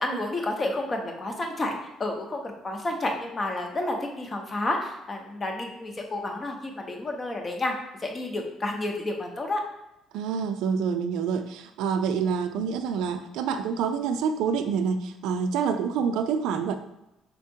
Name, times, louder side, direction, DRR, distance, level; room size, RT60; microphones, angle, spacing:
voice 1, 0.0-7.7 8.0-9.6, left 2 dB, 25° left, 3 dB, 0.7 m, -30 dB
voice 2, 10.1-16.7, right 6 dB, 90° right, 8 dB, 0.4 m, -27 dB
4.4 x 3.6 x 2.7 m, 0.89 s
cardioid pair, 135°, 0 cm